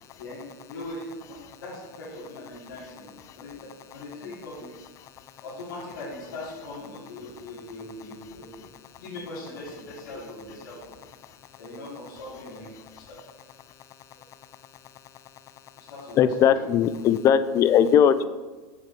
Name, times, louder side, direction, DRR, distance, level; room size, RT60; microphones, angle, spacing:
voice 1, 0.2-4.8 5.3-8.7 9.0-11.0 11.6-13.2 14.1-14.3 15.8-16.5, left 2 dB, 85° left, -8 dB, 2.7 m, -40 dB
voice 2, 16.2-18.3, left 8 dB, 30° left, 13 dB, 0.4 m, -19 dB
6.6 x 6.3 x 4.7 m, 1.3 s
supercardioid pair, 145°, 11 cm